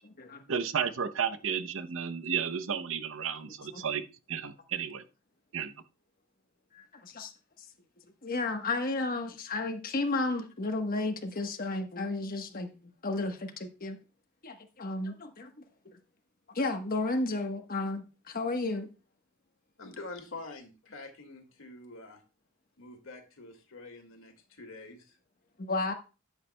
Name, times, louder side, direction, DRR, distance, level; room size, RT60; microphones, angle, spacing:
voice 1, 0.5-4.0 4.3-5.0 5.5-5.7, right 7 dB, 70° right, 0.8 m, -32 dB
voice 2, 6.7-7.3 8.2-12.7 13.0-14.0 14.4-15.5 15.8-15.9 16.5-18.9 25.6-25.9, left 2 dB, 45° left, 1.2 m, -32 dB
voice 3, 19.8-22.2 22.8-25.2, left 3 dB, 85° left, 2.0 m, -46 dB
12.5 x 8.1 x 2.2 m
head